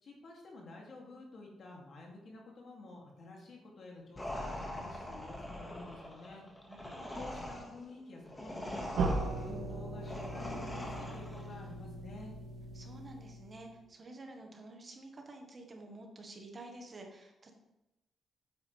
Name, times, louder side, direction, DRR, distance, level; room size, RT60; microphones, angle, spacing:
voice 1, 0.0-6.5 7.1-12.3, left 2 dB, 55° left, -1 dB, 2.5 m, -50 dB
sound 1, 4.2-11.5, left 1 dB, 15° left, 1.7 m, -43 dB
voice 2, 6.7-7.3 12.7-17.6, right 2 dB, 35° right, 2 dB, 1.5 m, -50 dB
sound 2, 9.0-13.8, right 2 dB, 65° right, 1.7 m, -38 dB
9.0 x 8.4 x 3.4 m, 0.94 s
cardioid pair, 110°, 0 cm